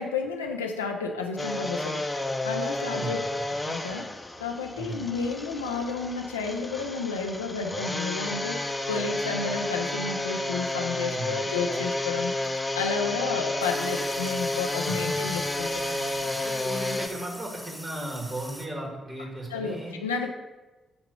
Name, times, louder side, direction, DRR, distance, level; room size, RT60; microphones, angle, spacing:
voice 1, 0.0-3.2 3.7-4.1 4.4-16.3 19.5-20.3, left 5 dB, 85° left, 2 dB, 0.5 m, -32 dB
sound 1, 1.4-17.1, left 1 dB, 15° left, 0.8 m, -31 dB
voice 2, 2.8-3.2 4.8-5.1 11.1-11.4 14.9-15.2 16.3-19.9, right 1 dB, 30° right, 0 dB, 2.3 m, -36 dB
sound 2, 13.6-18.7, equal, 5° right, 1.3 m, -43 dB
8.6 x 3.0 x 5.7 m, 1.2 s
figure-of-eight pair, 40°, 0 cm